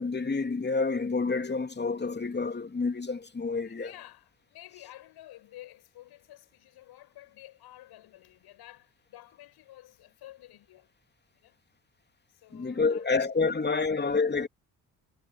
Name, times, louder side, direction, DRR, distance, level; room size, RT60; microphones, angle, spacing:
voice 1, 0.0-3.9 12.5-14.5, left 4 dB, 25° left, 3.0 m, -28 dB
voice 2, 3.6-10.9 11.3-11.6 12.3-14.1, left 15 dB, 60° left, 7.0 m, -52 dB
figure-of-eight pair, 45°, 43 cm